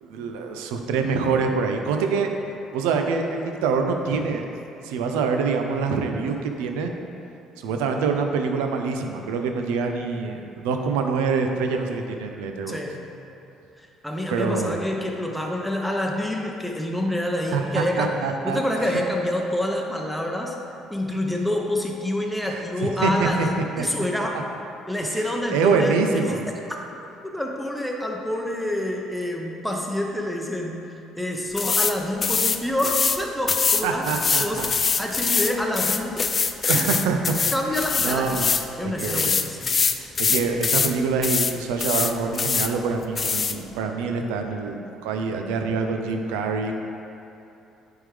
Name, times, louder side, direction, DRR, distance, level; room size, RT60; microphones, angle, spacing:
voice 1, 0.0-2.3 2.7-4.5 4.8-6.9 7.6-12.8 14.3-14.8 17.5-18.6 22.4-23.3 23.8-23.9 25.0-25.2 25.5-26.5 33.8-34.7 36.7-37.4 38.0-38.5 38.8-39.3 40.2-46.8, right 5 dB, 85° right, 4 dB, 0.5 m, -25 dB
voice 2, 12.7-13.1 13.8-18.1 18.4-20.6 20.9-24.4 24.9-26.4 27.3-34.1 34.4-34.7 35.0-36.3 36.7-36.9 37.5-38.4 38.8-39.8, left 1 dB, ahead, -1 dB, 0.8 m, -27 dB
sound 1, 31.6-31.9 32.2-33.2 33.5-38.7 39.0-40.9 41.2-41.5 41.8-42.7 43.2-43.6, left 5 dB, 40° left, 0.3 m, -23 dB
9.0 x 3.6 x 3.3 m, 2.8 s
supercardioid pair, 65°, 0 cm